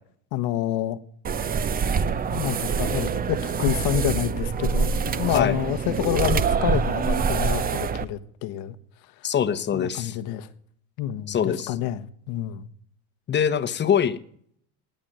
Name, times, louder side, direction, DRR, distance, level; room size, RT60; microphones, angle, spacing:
voice 1, 0.3-1.0 2.3-8.7 9.7-10.5 11.0-12.7, left 12 dB, 65° left, 12 dB, 1.4 m, -28 dB
sound 1, 1.2-8.0, right 6 dB, 25° right, 0.8 m, -25 dB
voice 2, 9.2-10.2 11.3-11.7 13.3-14.2, left 8 dB, 30° left, 12 dB, 1.1 m, -23 dB
19.5 x 8.1 x 9.3 m, 0.65 s
cardioid pair, 135°, 38 cm